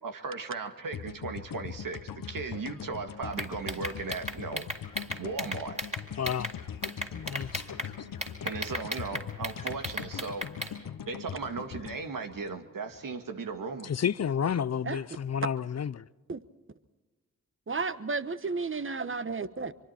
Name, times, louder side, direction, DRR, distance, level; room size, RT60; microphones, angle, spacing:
voice 1, 0.0-4.6 5.2-5.8 8.4-10.5 11.1-13.9, right 4 dB, 70° right, 1.9 m, -37 dB
sound 1, 0.9-13.1, left 8 dB, 70° left, 1.1 m, -41 dB
sound 2, 3.3-6.5 6.8-7.9 8.2-10.7, equal, 20° right, 4.0 m, -35 dB
voice 2, 6.2-6.5 7.1-7.9 13.8-16.0, left 8 dB, 50° left, 0.6 m, -31 dB
voice 3, 17.7-19.7, right 4 dB, 35° right, 1.3 m, -33 dB
24.5 x 24.5 x 4.4 m
supercardioid pair, 45°, 34 cm